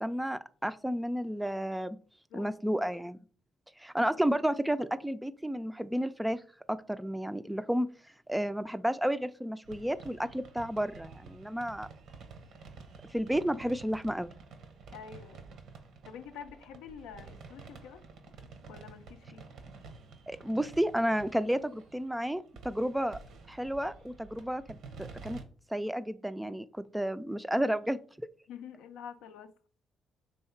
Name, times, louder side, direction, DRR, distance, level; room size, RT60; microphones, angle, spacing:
voice 1, 0.0-2.0 2.3-3.2 3.8-6.4 6.7-7.9 8.3-11.9 13.1-14.3 20.3-23.2 23.5-25.4 25.7-28.3, equal, 5° right, 0.3 m, -32 dB
sound 1, 9.6-25.4, right 4 dB, 70° right, 0.7 m, -50 dB
voice 2, 14.9-15.5 16.0-18.0 18.7-19.5 28.5-29.5, left 7 dB, 85° left, 0.4 m, -47 dB
3.2 x 2.7 x 4.4 m
supercardioid pair, 65°, 0 cm